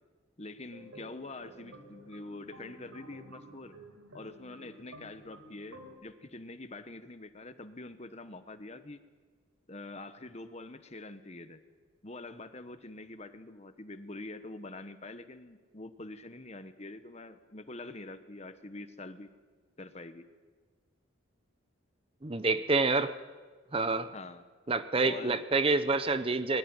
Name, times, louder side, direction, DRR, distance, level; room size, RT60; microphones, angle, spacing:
voice 1, 0.4-3.7 4.1-9.0 9.7-11.6 12.0-19.3 19.8-20.3 24.1-24.4 25.0-25.4, left 2 dB, 30° left, 10 dB, 1.1 m, -45 dB
sound 1, 0.7-5.9, right 1 dB, 80° right, 4.3 m, -52 dB
voice 2, 22.2-23.1 23.7-24.1 24.7-26.6, right 3 dB, 25° right, 12 dB, 0.6 m, -27 dB
21.5 x 16.0 x 9.7 m, 1.5 s
head